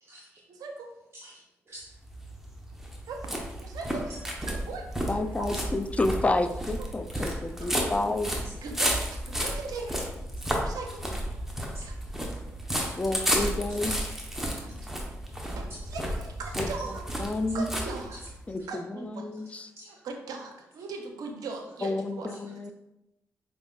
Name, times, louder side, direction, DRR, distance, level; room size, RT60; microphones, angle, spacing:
voice 1, 0.5-0.9 3.0-5.5 6.8-7.1 7.6-7.9 8.6-10.0 10.6-11.0 11.8-12.0 12.9-13.0 14.6-14.9 15.4-17.1 17.5-18.2 18.7-19.3 20.0-22.3, right 4 dB, 75° right, 4 dB, 0.5 m, -39 dB
voice 2, 1.2-1.9 5.5-5.6 7.1-7.3 11.7-11.8 12.8-12.9 18.6-18.7 19.8-19.9 22.3-22.4, right 1 dB, 40° right, -4 dB, 0.8 m, -47 dB
sound 1, 2.0-18.5, equal, 5° right, 0.8 m, -32 dB
voice 3, 5.1-8.3 13.0-13.9 16.6-16.7 17.2-17.7 18.5-19.7 21.8-22.7, left 2 dB, 20° left, 9 dB, 0.3 m, -30 dB
4.9 x 2.4 x 2.3 m, 0.91 s
hypercardioid pair, 45°, 6 cm